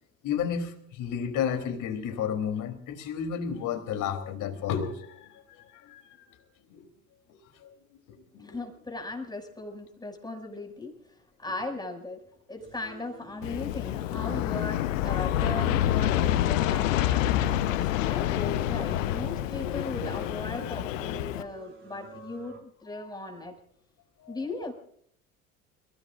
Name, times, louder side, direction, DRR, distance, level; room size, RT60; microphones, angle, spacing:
voice 1, 0.2-6.2 6.7-6.8 7.6-7.7 8.3-8.6 21.4-21.5 22.9-23.4 24.2-24.4, left 7 dB, 50° left, 5 dB, 3.6 m, -32 dB
voice 2, 8.4-10.9 11.4-12.2 12.5-23.5 24.3-24.7, left 2 dB, 10° left, 2 dB, 6.5 m, -38 dB
sound 1, 12.6-22.6, right 2 dB, 30° right, 4.0 m, -51 dB
Aircraft, 13.4-21.4, left 12 dB, 65° left, 1.0 m, -27 dB
30.0 x 17.0 x 2.6 m, 0.67 s
figure-of-eight pair, 65°, 41 cm